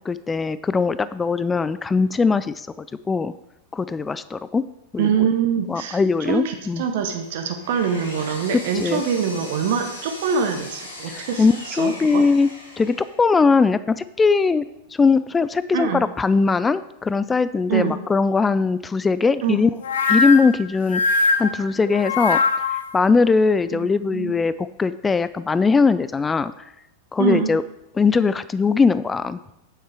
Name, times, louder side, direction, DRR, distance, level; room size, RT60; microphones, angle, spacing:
voice 1, 0.1-2.7 3.1-3.3 3.7-4.6 4.9-5.3 5.7-6.8 8.5-9.0 11.1-12.5 12.8-14.7 14.9-19.7 20.1-21.0 21.4-22.4 22.9-26.5 27.1-27.6 28.0-29.4, left 4 dB, 15° left, 15 dB, 0.3 m, -20 dB
voice 2, 5.0-12.3 15.7-16.0 17.7-17.9 19.4-19.6 23.7-24.3 27.2-27.5, right 7 dB, 50° right, 6 dB, 0.9 m, -24 dB
Power tool, 7.2-13.3, left 1 dB, 80° left, 2.4 m, -39 dB
sound 1, 19.8-22.9, left 4 dB, 65° left, 0.8 m, -21 dB
9.0 x 7.2 x 4.7 m, 0.85 s
figure-of-eight pair, 90°, 0 cm